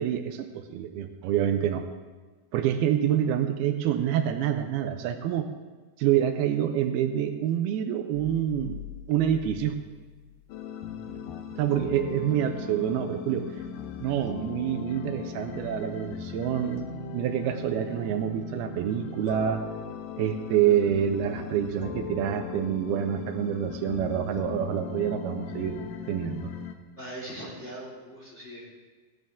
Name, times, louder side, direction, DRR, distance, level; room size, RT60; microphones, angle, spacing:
voice 1, 0.0-1.8 2.5-5.5 6.0-9.8 11.6-13.5 14.0-19.6 20.2-25.8 26.1-26.5, right 10 dB, 85° right, 7 dB, 2.6 m, -27 dB
sound 1, 8.1-11.1, left 13 dB, 90° left, 1.8 m, -45 dB
sound 2, 10.5-26.7, left 7 dB, 70° left, 2.2 m, -38 dB
voice 2, 27.0-28.7, right 1 dB, 20° left, -5 dB, 2.7 m, -40 dB
16.0 x 11.5 x 3.7 m, 1.3 s
omnidirectional pair, 4.5 m